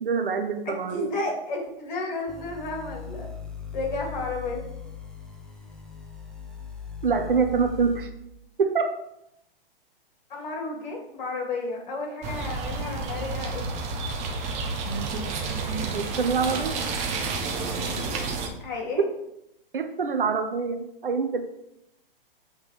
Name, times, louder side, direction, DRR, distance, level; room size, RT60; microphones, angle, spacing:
voice 1, 0.0-1.1 7.0-8.1 8.6-8.9 15.9-16.8 19.7-21.4, right 5 dB, 65° right, 6 dB, 0.9 m, -25 dB
voice 2, 0.6-3.3 3.7-4.7 10.3-13.7 18.6-19.1, left 2 dB, 50° left, 0 dB, 2.6 m, -32 dB
sound 1, 2.3-8.1, left 7 dB, ahead, 0.8 m, -39 dB
sound 2, 12.2-18.5, right 4 dB, 25° right, 1.0 m, -30 dB
8.0 x 4.0 x 5.2 m, 0.82 s
figure-of-eight pair, 115°, 29 cm